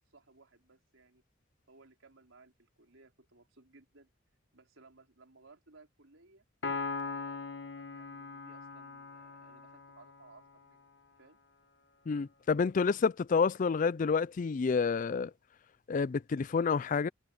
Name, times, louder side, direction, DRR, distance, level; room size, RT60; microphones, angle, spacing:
voice 1, 0.1-1.2 1.7-4.1 4.5-6.4 7.0-10.9 11.2-11.4, right 3 dB, 80° right, 4.3 m, -61 dB
Piano, 6.6-10.2, left 4 dB, 60° left, 1.5 m, -40 dB
voice 2, 12.1-15.3 15.9-17.1, left 5 dB, 40° left, 0.4 m, -29 dB
head